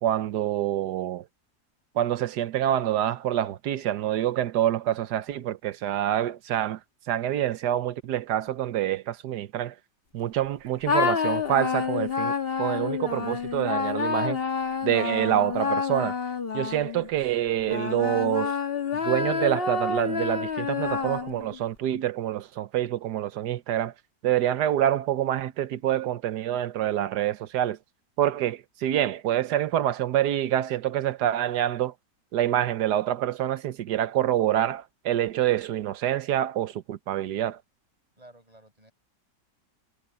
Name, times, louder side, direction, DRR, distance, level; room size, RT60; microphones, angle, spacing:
voice 1, 0.0-1.3 1.9-6.8 7.1-9.8 10.1-14.4 14.8-16.2 16.5-18.6 18.9-23.9 24.2-27.8 28.2-31.9 32.3-37.6, right 11 dB, 75° right, 1.3 m, -26 dB
sound 1, 10.9-17.1 17.7-21.6, left 6 dB, 35° left, 1.4 m, -28 dB
voice 2, 38.2-38.9, right 1 dB, 20° right, 7.5 m, -53 dB
omnidirectional pair, 1.9 m